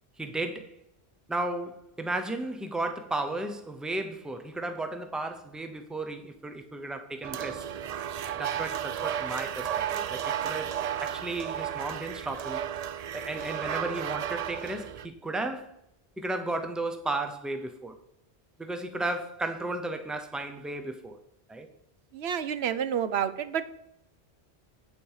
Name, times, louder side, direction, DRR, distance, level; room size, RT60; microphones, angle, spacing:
voice 1, 0.2-0.8 1.3-7.7 8.3-12.7 13.1-15.7 16.2-17.9 18.6-21.2 21.5-21.7, right 2 dB, ahead, 0.8 m, -34 dB
sound 1, 7.2-15.1, right 9 dB, 55° right, 0.4 m, -33 dB
voice 2, 22.1-23.7, right 8 dB, 80° right, 0.9 m, -29 dB
8.6 x 7.5 x 5.6 m
omnidirectional pair, 1.1 m